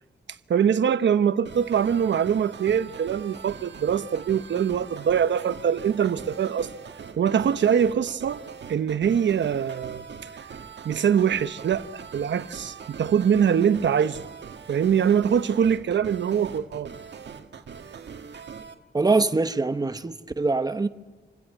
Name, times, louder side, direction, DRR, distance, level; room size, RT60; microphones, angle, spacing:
voice 1, 0.5-6.7 7.2-8.4 8.7-10.3 10.8-14.2 14.7-16.9, right 8 dB, 90° right, 1.0 m, -23 dB
sound 1, 1.4-18.7, right 6 dB, 75° right, 1.9 m, -42 dB
voice 2, 18.9-20.9, right 3 dB, 20° right, 1.0 m, -23 dB
28.0 x 17.0 x 9.9 m
wide cardioid pair, 180°, 18 cm